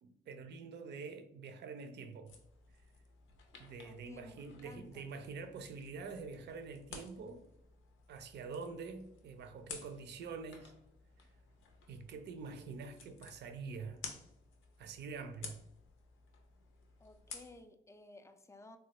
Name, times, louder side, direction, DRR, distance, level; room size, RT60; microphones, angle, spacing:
voice 1, 0.0-2.4 3.5-7.5 8.1-10.7 11.9-14.0 14.8-15.6, right 4 dB, 60° right, 0.5 m, -46 dB
sound 1, 2.3-17.6, left 5 dB, 85° left, 0.6 m, -54 dB
voice 2, 3.8-5.1 17.0-18.8, left 2 dB, 15° left, 0.3 m, -56 dB
3.2 x 2.3 x 2.9 m
cardioid pair, 90°, 20 cm